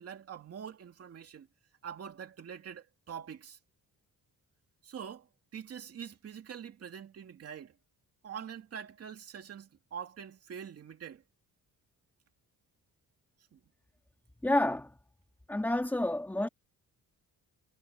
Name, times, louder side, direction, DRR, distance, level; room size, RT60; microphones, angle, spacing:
voice 1, 0.0-1.5 1.8-3.6 4.8-5.3 5.5-7.7 8.2-11.2 13.5-13.6, right 8 dB, 45° right, 2.5 m, -44 dB
voice 2, 14.4-15.0 15.5-16.5, left 1 dB, 5° left, 1.9 m, -29 dB
cardioid pair, 165°, 33 cm